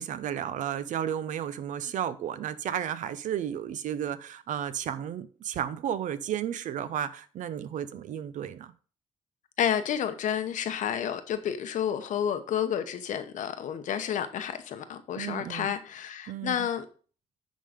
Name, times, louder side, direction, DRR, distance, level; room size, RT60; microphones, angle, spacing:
voice 1, 0.0-8.7 15.2-15.7 16.3-16.7, right 9 dB, 75° right, 0.7 m, -33 dB
voice 2, 9.6-16.9, left 9 dB, 75° left, 0.9 m, -30 dB
10.0 x 3.8 x 5.1 m
cardioid pair, 90°, 13 cm